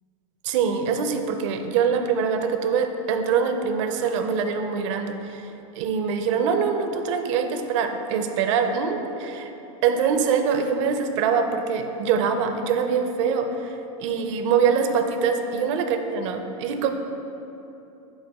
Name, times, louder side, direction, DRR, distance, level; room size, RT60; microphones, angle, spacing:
voice 1, 0.4-9.5 9.8-16.9, right 6 dB, 55° right, 6 dB, 0.5 m, -24 dB
4.8 x 3.9 x 5.3 m, 3.0 s
supercardioid pair, 135°, 18 cm